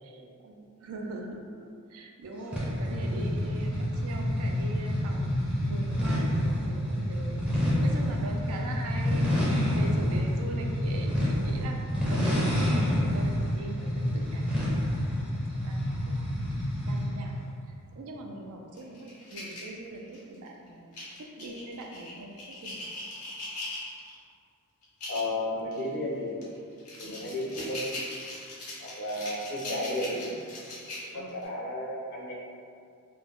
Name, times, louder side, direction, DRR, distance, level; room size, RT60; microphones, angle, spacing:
voice 1, 0.0-7.4 7.8-14.8 15.6-16.3 16.9-17.3 17.9-22.9 27.0-27.5 31.1-31.4, right 1 dB, 70° right, 1 dB, 0.4 m, -41 dB
sound 1, 2.5-17.2, equal, 5° right, 0.5 m, -28 dB
sound 2, 18.8-20.4 20.9-24.2 24.8-25.3 25.7-25.9 26.4-31.4, left 2 dB, 80° left, 0.8 m, -40 dB
voice 2, 25.1-26.3 27.0-27.9 28.8-30.4 31.1-32.3, left 1 dB, 50° left, -3 dB, 0.5 m, -33 dB
2.5 x 2.0 x 3.4 m, 2.3 s
head